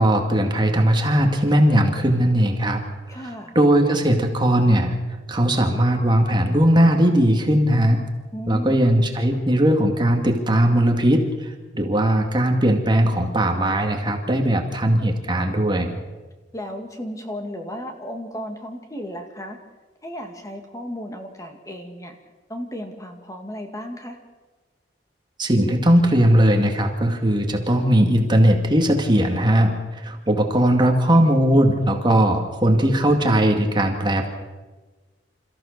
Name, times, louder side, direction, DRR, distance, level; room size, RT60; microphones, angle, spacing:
voice 1, 0.0-2.8 3.1-3.2 3.6-4.9 5.3-8.0 8.5-16.0 25.4-34.3, right 1 dB, 25° right, 3 dB, 2.2 m, -19 dB
voice 2, 3.1-3.5 8.3-8.9 16.5-19.6 20.0-22.2 22.5-24.2, equal, 20° left, 4 dB, 2.1 m, -34 dB
28.0 x 14.5 x 6.7 m, 1.2 s
head